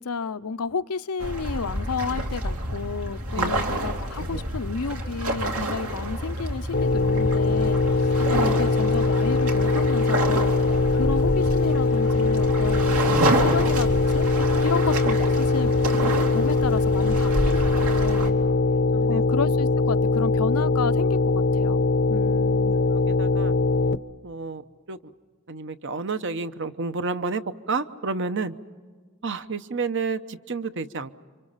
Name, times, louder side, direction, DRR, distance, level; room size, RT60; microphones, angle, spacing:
voice 1, 0.0-10.6 10.9-14.3 14.6-18.4 19.1-21.8 22.1-22.8, left 5 dB, 85° left, 0.7 m, -31 dB
sound 1, 1.2-18.3, right 1 dB, 75° right, 3.0 m, -28 dB
sound 2, 6.7-24.0, left 3 dB, 50° left, 0.6 m, -22 dB
voice 2, 18.9-19.2 22.8-23.5 24.2-25.1 25.5-27.4 27.7-28.5 29.2-31.1, right 4 dB, 55° right, 0.9 m, -31 dB
29.5 x 26.0 x 5.7 m
head